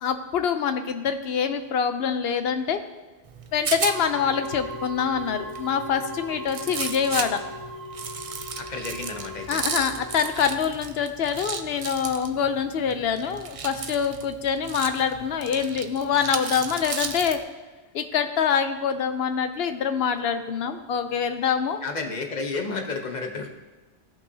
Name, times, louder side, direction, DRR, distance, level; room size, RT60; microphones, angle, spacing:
voice 1, 0.0-2.8 3.5-7.4 9.5-17.4 17.9-21.8, left 7 dB, 70° left, 9 dB, 0.8 m, -25 dB
Rattle, 3.3-17.4, right 6 dB, 50° right, 0.4 m, -35 dB
sound 1, 3.8-10.4, equal, 20° left, 0.8 m, -38 dB
voice 2, 8.6-9.6 21.8-23.5, left 3 dB, 45° left, 3 dB, 1.0 m, -31 dB
14.5 x 5.6 x 2.7 m, 1.2 s
omnidirectional pair, 1.1 m